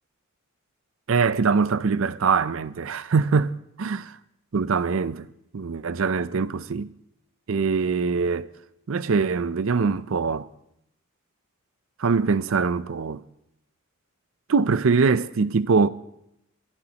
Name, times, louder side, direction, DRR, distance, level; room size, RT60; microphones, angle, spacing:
voice 1, 1.1-4.0 4.5-5.3 5.5-6.9 7.5-8.5 8.9-10.5 12.0-13.2 14.5-15.9, right 5 dB, 70° right, 0.5 m, -23 dB
27.5 x 12.0 x 2.9 m
head